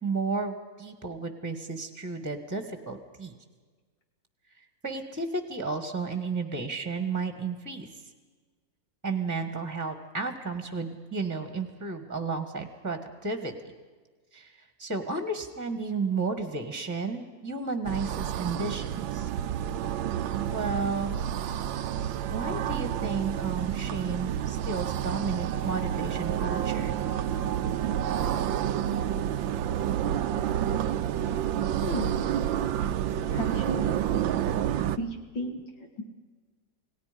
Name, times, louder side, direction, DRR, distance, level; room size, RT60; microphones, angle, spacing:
voice 1, 0.0-3.3 4.8-7.9 9.0-13.5 14.3-14.5 14.8-19.3 20.5-21.2 22.3-27.0, right 4 dB, 10° right, 7 dB, 1.6 m, -33 dB
sound 1, 17.9-35.0, right 10 dB, 85° right, 1.5 m, -29 dB
voice 2, 31.8-32.2 33.3-34.0 35.0-35.6 36.0-36.1, left 1 dB, 75° left, 2 dB, 3.3 m, -34 dB
28.5 x 19.0 x 5.3 m, 1.4 s
omnidirectional pair, 2.0 m